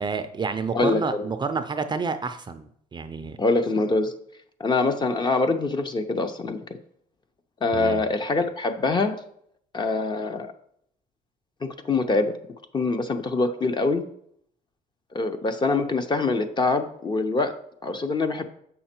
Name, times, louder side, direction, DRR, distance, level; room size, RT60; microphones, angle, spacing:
voice 1, 0.0-3.4 7.7-8.0, right 4 dB, 25° right, 9 dB, 0.5 m, -29 dB
voice 2, 0.7-1.2 3.4-4.1 4.6-6.6 7.6-9.2 9.7-10.5 11.6-12.3 12.7-14.0 15.1-17.5 17.8-18.4, left 3 dB, 25° left, 8 dB, 0.8 m, -24 dB
7.5 x 5.6 x 4.4 m, 0.69 s
cardioid pair, 110°, 17 cm